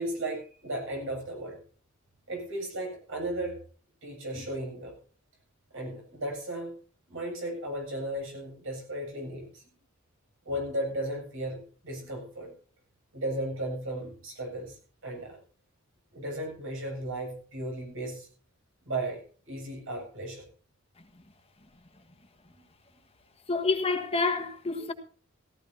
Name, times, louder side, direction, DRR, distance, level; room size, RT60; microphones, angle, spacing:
voice 1, 0.0-1.6 2.3-3.6 4.0-4.9 5.7-6.8 7.1-9.6 10.4-12.5 13.1-15.4 16.1-18.3 18.9-20.5 22.6-22.7, right 1 dB, 65° right, 7.8 m, -35 dB
voice 2, 23.5-24.9, left 3 dB, 30° left, 1.6 m, -28 dB
18.0 x 15.0 x 2.8 m
head